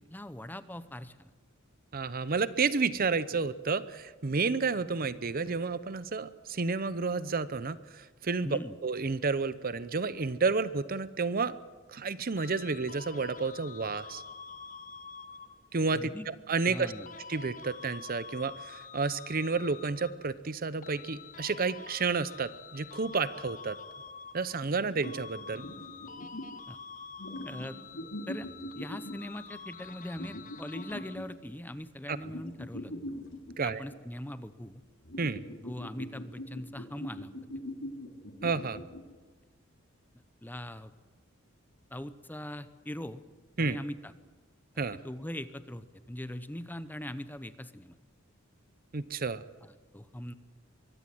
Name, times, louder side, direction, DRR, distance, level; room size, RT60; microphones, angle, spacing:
voice 1, 0.1-1.3 8.4-8.7 15.9-16.3 16.7-17.1 26.7-26.8 27.4-27.8 28.3-28.5 28.7-32.9 33.6-34.8 35.6-37.3 40.4-40.9 41.9-43.2 43.6-44.1 44.9-48.0 49.6-50.3, left 1 dB, 10° left, 13 dB, 0.8 m, -41 dB
voice 2, 1.9-11.5 11.9-14.2 15.7-16.1 16.5-16.9 17.3-23.8 24.3-25.7 32.1-32.2 33.6-33.8 35.2-35.4 38.4-38.8 43.6-43.8 44.8-45.0 48.9-49.4, right 4 dB, 45° right, 15 dB, 0.7 m, -31 dB
sound 1, 12.4-15.7 16.6-20.4 20.8-24.8 25.0-31.4, left 5 dB, 40° left, 1.0 m, -47 dB
sound 2, 25.0-25.2 25.6-26.6 27.2-29.3 30.2-31.3 32.2-34.0 35.0-39.0, left 1 dB, 70° left, 3.2 m, -42 dB
23.5 x 16.0 x 7.8 m, 1.3 s
head